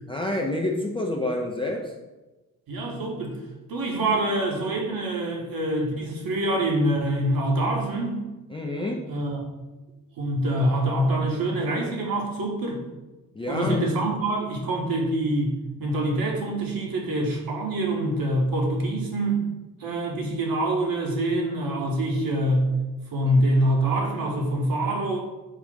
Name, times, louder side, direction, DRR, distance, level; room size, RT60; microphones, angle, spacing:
voice 1, 0.1-1.9 8.5-9.0 13.3-13.9 23.2-23.4, left 1 dB, 10° left, -1 dB, 0.4 m, -28 dB
voice 2, 2.7-3.4 3.7-8.2 9.1-9.4 10.2-12.8 13.5-19.5 19.8-22.7 23.1-25.2, right 1 dB, 50° right, 0 dB, 1.1 m, -25 dB
3.6 x 2.5 x 3.6 m, 1.1 s
figure-of-eight pair, 40°, 45 cm